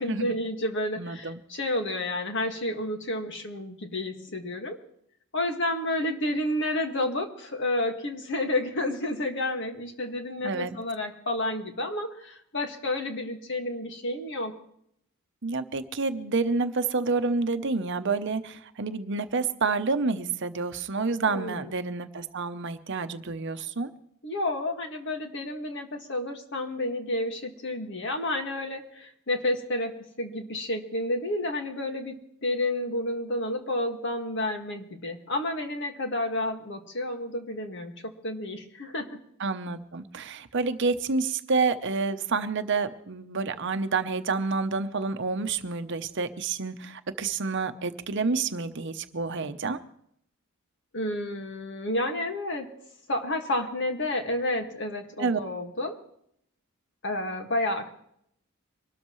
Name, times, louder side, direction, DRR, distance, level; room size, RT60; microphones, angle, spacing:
voice 1, 0.0-4.8 5.3-14.5 21.3-21.7 24.2-39.2 50.9-52.7 53.1-56.0 57.0-57.9, left 1 dB, 55° left, 5 dB, 1.9 m, -30 dB
voice 2, 1.0-1.4 10.4-10.8 15.4-23.9 39.4-49.8 55.2-55.4, right 4 dB, 55° right, 9 dB, 0.8 m, -29 dB
24.5 x 13.0 x 3.1 m, 0.71 s
head